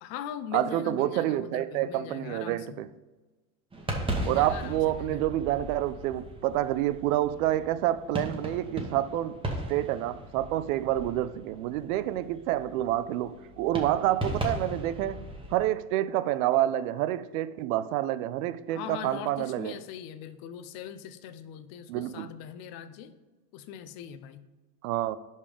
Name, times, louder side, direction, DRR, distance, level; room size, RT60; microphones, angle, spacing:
voice 1, 0.0-2.8 4.2-5.3 18.7-23.1 23.5-24.4, left 9 dB, 55° left, 0.7 m, -41 dB
voice 2, 0.5-2.9 4.2-9.4 9.7-15.2 15.5-19.8 21.9-22.3 24.8-25.2, right 13 dB, 75° right, 0.5 m, -28 dB
sound 1, 3.7-15.6, right 1 dB, 10° right, 1.1 m, -37 dB
5.4 x 5.2 x 4.9 m
supercardioid pair, 125°, 42 cm